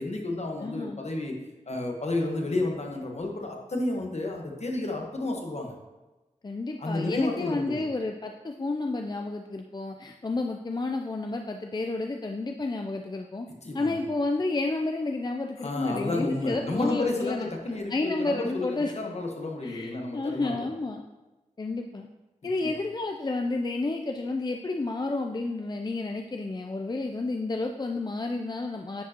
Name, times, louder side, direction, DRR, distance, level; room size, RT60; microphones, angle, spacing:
voice 1, 0.0-1.4 1.7-5.7 6.8-7.9 13.6-14.0 15.6-20.7 22.6-22.7, left 2 dB, 55° left, 1 dB, 1.3 m, -31 dB
voice 2, 0.6-1.0 6.4-13.5 13.7-17.5 17.9-18.9 19.6-21.0 21.6-22.1 22.4-29.0, left 2 dB, 35° left, 3 dB, 0.5 m, -31 dB
10.0 x 4.7 x 2.9 m, 1.1 s
cardioid pair, 50°, 13 cm